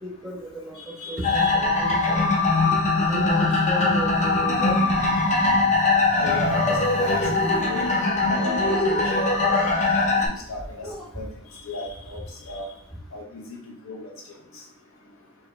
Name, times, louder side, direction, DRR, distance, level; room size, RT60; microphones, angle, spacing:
voice 1, 0.0-0.4 0.6-0.8 1.1-2.3 3.1-4.8 10.8-11.0, equal, ahead, -2 dB, 1.1 m, -32 dB
voice 2, 1.0-1.5 6.1-7.9 8.3-9.1 9.4-9.6 9.9-10.9 11.1-11.3 11.7-12.7 13.1-13.4 13.8-14.0, left 3 dB, 70° left, -1 dB, 0.9 m, -34 dB
sound 1, 1.2-10.3, left 3 dB, 35° left, 0.8 m, -21 dB
4.8 x 2.9 x 3.3 m, 0.70 s
head